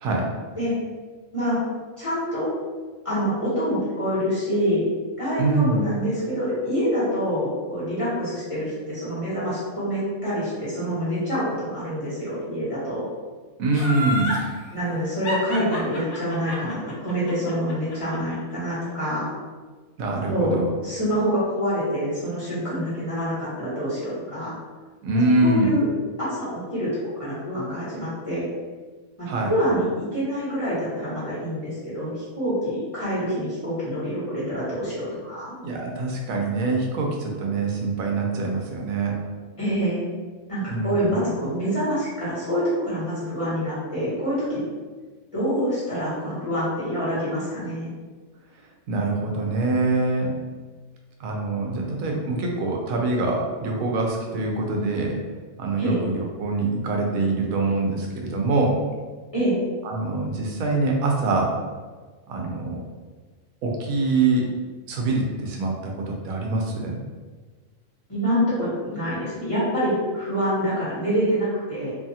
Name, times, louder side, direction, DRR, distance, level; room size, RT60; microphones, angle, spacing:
voice 1, 2.0-2.5 3.0-4.9 5.2-13.0 14.7-19.3 20.3-24.5 25.4-25.8 26.2-26.9 27.2-28.5 29.2-35.5 39.6-40.0 40.5-44.6 45.3-47.9 55.8-56.0 59.3-59.6 68.1-71.9, equal, 25° left, -11 dB, 1.0 m, -26 dB
voice 2, 5.4-5.9 13.6-14.3 20.0-20.7 25.0-25.8 29.3-29.5 35.6-39.2 40.7-41.1 48.9-50.3 51.2-55.2 55.6-58.8 59.8-61.6 62.3-62.8 63.6-64.5 64.9-67.0, right 3 dB, 85° right, 0 dB, 1.0 m, -24 dB
Laughter, 13.7-14.4 15.2-18.3 18.7-18.8, equal, 65° left, 1.0 m, -29 dB
2.7 x 2.3 x 2.7 m, 1.4 s
omnidirectional pair, 1.4 m